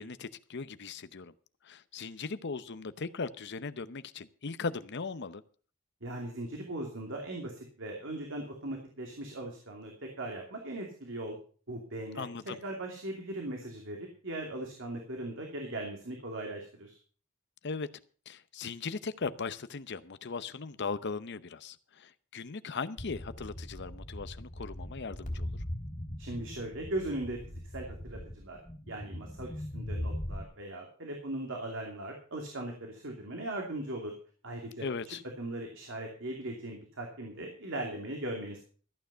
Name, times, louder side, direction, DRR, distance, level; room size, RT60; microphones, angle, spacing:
voice 1, 0.0-1.3 1.6-5.4 12.2-12.6 17.6-17.9 18.3-25.5 34.8-35.2, left 4 dB, 55° left, 13 dB, 0.7 m, -38 dB
voice 2, 6.0-9.9 10.2-11.4 11.7-12.3 12.6-17.0 26.2-28.6 28.9-34.1 34.4-38.6, right 1 dB, 60° right, 1 dB, 2.7 m, -39 dB
sound 1, 23.0-30.4, left 1 dB, 35° left, 3.2 m, -40 dB
14.0 x 9.2 x 5.6 m, 0.41 s
head